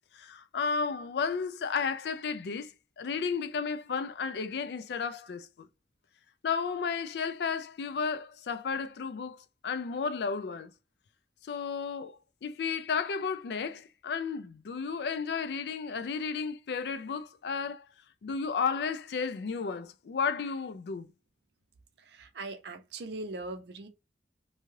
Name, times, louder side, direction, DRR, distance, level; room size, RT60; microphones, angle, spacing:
voice 1, 0.1-2.7 3.0-5.7 6.4-10.7 11.5-17.9 18.2-21.1, left 5 dB, 65° left, 0.3 m, -33 dB
voice 2, 22.0-23.9, right 2 dB, 70° right, 0.5 m, -40 dB
2.7 x 2.3 x 3.1 m
head